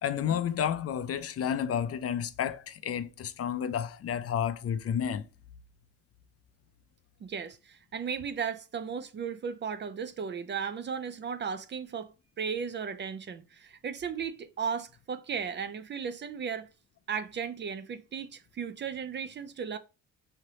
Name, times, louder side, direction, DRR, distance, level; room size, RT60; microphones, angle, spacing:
voice 1, 0.0-5.3, left 8 dB, 50° left, 0.5 m, -31 dB
voice 2, 7.2-16.7 17.1-19.8, right 6 dB, 40° right, 0.4 m, -35 dB
4.9 x 3.2 x 2.8 m
cardioid pair, 90°, 30 cm